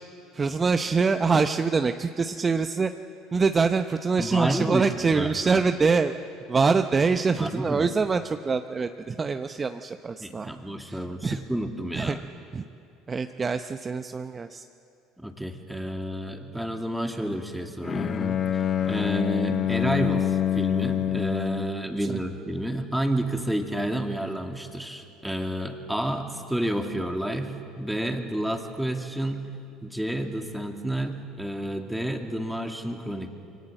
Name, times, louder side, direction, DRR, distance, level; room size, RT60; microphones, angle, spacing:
voice 1, 0.3-2.9 3.3-6.1 6.5-10.5 10.9-11.4 11.9-12.2 12.5-12.6 13.1-14.7 22.0-22.2, right 4 dB, 30° right, 9 dB, 0.8 m, -25 dB
voice 2, 4.2-4.9 5.1-5.6 7.4-7.8 10.2-12.3 15.2-29.4 29.8-33.3, right 1 dB, 5° right, 4 dB, 2.4 m, -30 dB
Bowed string instrument, 17.8-21.9, left 10 dB, 45° left, 0.8 m, -26 dB
24.0 x 17.5 x 7.7 m, 2.7 s
hypercardioid pair, 65°, 0 cm